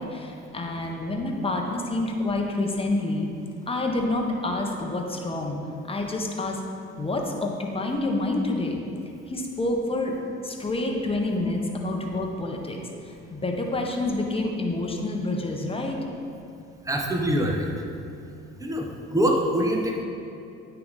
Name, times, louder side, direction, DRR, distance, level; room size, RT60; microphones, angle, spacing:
voice 1, 0.0-3.3 3.7-5.6 5.9-6.6 7.0-8.8 9.3-10.2 10.4-12.8 13.0-16.0, left 2 dB, 20° left, 1 dB, 1.0 m, -28 dB
voice 2, 16.8-17.7 18.6-20.0, equal, 10° right, 1 dB, 0.9 m, -24 dB
9.4 x 3.5 x 4.0 m, 2.6 s
supercardioid pair, 60°, 30 cm